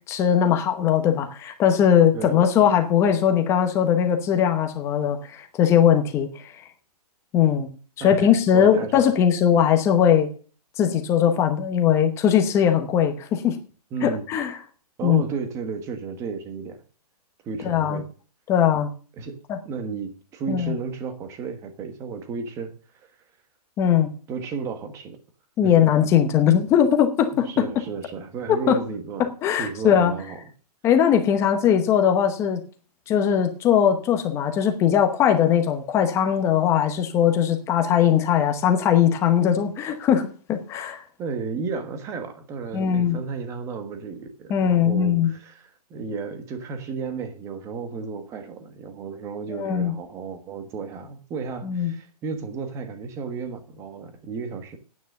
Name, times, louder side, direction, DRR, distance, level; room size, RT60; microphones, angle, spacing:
voice 1, 0.1-6.5 7.3-7.7 8.0-10.3 10.8-13.6 14.0-14.5 15.0-15.2 17.6-18.0 18.5-18.9 19.5-19.6 20.5-20.7 23.8-24.1 25.6-27.7 28.5-28.8 29.2-30.1 30.8-32.6 33.1-41.0 42.7-43.2 44.5-45.3 49.5-49.9 51.6-51.9, left 9 dB, 15° left, 6 dB, 0.9 m, -20 dB
voice 2, 8.0-9.1 13.9-14.3 15.0-16.8 17.4-18.1 19.2-19.4 19.6-23.1 24.3-25.2 25.6-25.7 27.3-29.3 29.6-30.4 41.2-54.8, right 5 dB, 15° right, 8 dB, 1.3 m, -33 dB
9.4 x 9.3 x 6.4 m, 0.40 s
hypercardioid pair, 165°, 21 cm